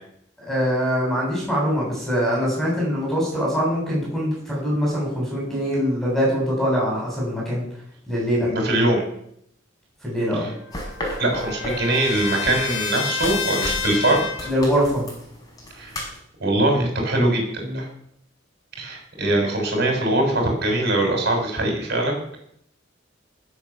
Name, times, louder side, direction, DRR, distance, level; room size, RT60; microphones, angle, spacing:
voice 1, 0.4-7.6 8.1-8.5 10.0-10.5 14.5-15.0 17.6-17.8, equal, ahead, -4 dB, 7.9 m, -23 dB
voice 2, 8.4-9.0 10.4-10.5 11.2-14.5 15.7-16.0 16.4-17.9 18.8-22.4, right 1 dB, 55° right, 2 dB, 7.1 m, -22 dB
Trumpet, 10.2-14.6, left 6 dB, 80° left, 2.1 m, -29 dB
sound 1, 10.7-16.2, left 1 dB, 20° left, 4.9 m, -35 dB
19.5 x 8.4 x 7.4 m, 0.72 s
head